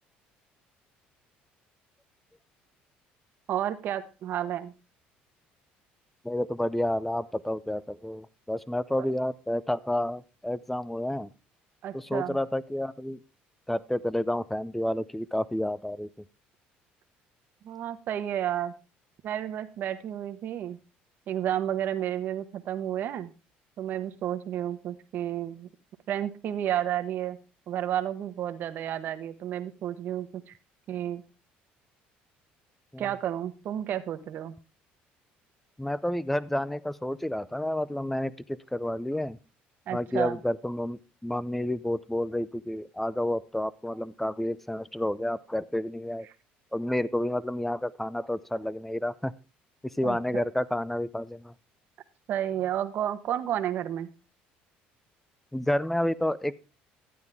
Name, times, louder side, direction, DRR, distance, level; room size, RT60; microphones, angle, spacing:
voice 1, 3.5-4.7 9.0-9.1 11.8-12.4 17.6-18.7 19.2-20.8 21.3-23.3 23.8-25.7 26.1-27.4 27.7-30.5 30.9-31.2 33.0-34.6 39.9-40.4 50.0-50.4 52.3-54.1, right 11 dB, 55° right, 9 dB, 1.1 m, -31 dB
voice 2, 6.2-11.3 11.9-13.2 13.7-16.1 32.9-33.0 35.8-39.4 39.9-46.3 46.7-49.3 49.8-51.5 55.5-56.7, left 1 dB, 5° left, 19 dB, 0.6 m, -30 dB
12.0 x 9.2 x 3.5 m, 0.30 s
cardioid pair, 100°, 4 cm